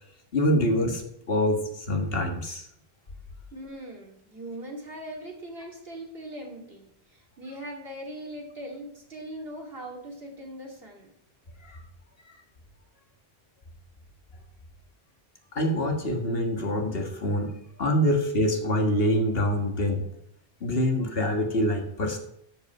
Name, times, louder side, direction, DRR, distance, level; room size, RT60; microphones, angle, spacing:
voice 1, 0.3-2.7 11.6-11.8 15.6-17.5 17.8-20.1 20.6-22.2, equal, 65° left, 3 dB, 1.8 m, -25 dB
voice 2, 3.5-11.1, right 1 dB, 65° right, -1 dB, 2.8 m, -40 dB
13.0 x 5.5 x 5.5 m, 0.74 s
omnidirectional pair, 1.1 m